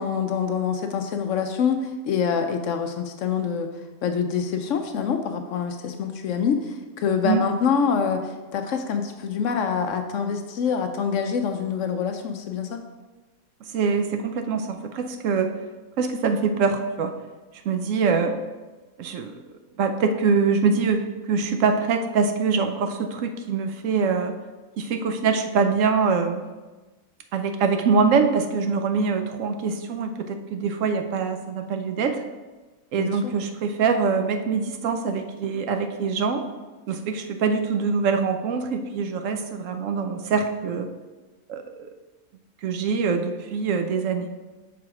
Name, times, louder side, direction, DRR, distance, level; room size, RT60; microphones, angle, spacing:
voice 1, 0.0-3.7 4.0-12.8 33.0-33.3, left 6 dB, 70° left, 6 dB, 0.8 m, -25 dB
voice 2, 13.7-15.5 16.0-17.1 17.6-18.4 19.0-19.4 19.8-24.3 24.8-26.4 27.3-32.2 32.9-36.4 36.9-40.9 41.5-41.9 42.6-44.3, right 5 dB, 70° right, 6 dB, 0.9 m, -24 dB
6.0 x 4.6 x 4.8 m, 1.2 s
omnidirectional pair, 1.5 m